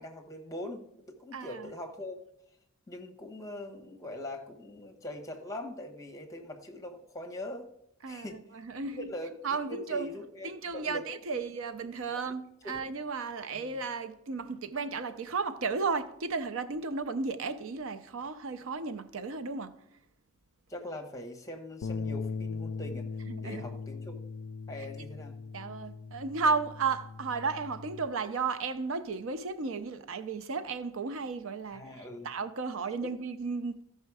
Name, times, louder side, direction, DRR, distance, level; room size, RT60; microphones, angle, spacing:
voice 1, 0.0-2.2 2.9-7.7 8.1-8.4 8.9-11.1 12.1-12.2 12.6-12.8 13.5-13.7 20.7-23.1 23.4-24.2 24.7-25.4 31.7-32.3 33.0-33.1, left 1 dB, 15° left, 1.1 m, -42 dB
voice 2, 1.3-1.7 8.0-9.1 9.4-10.1 10.4-19.7 23.3-23.6 25.5-31.9 32.2-33.8, right 4 dB, 60° right, 0.5 m, -34 dB
sound 1, 21.8-28.1, left 4 dB, 80° left, 0.4 m, -39 dB
14.0 x 5.5 x 4.8 m
head